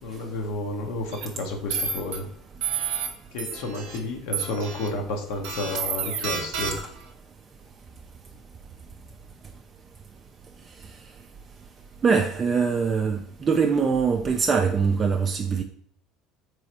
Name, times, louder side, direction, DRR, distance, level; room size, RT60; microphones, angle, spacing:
voice 1, 0.0-2.3 3.3-6.8, left 2 dB, 65° left, 0.6 m, -31 dB
sound 1, 1.1-1.3 1.7-2.2 2.6-3.1 3.4-4.0 4.3-4.9 5.4-7.0, right 6 dB, 65° right, 0.6 m, -30 dB
voice 2, 12.0-15.6, right 5 dB, 30° right, 0.3 m, -23 dB
3.9 x 3.1 x 2.8 m
hypercardioid pair, 65°, 0 cm